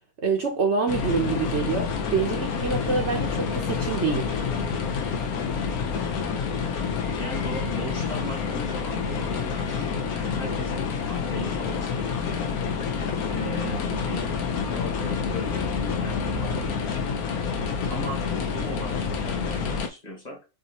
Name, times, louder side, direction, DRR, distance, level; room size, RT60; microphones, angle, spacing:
voice 1, 0.2-4.3, right 5 dB, 55° right, 1.0 m, -26 dB
sound 1, 0.9-19.9, left 5 dB, 75° left, 1.2 m, -28 dB
voice 2, 7.1-12.5 13.2-14.3 14.6-15.7 16.0-17.1 17.9-20.4, equal, 30° left, 1.5 m, -38 dB
6.3 x 2.7 x 2.9 m
omnidirectional pair, 1.6 m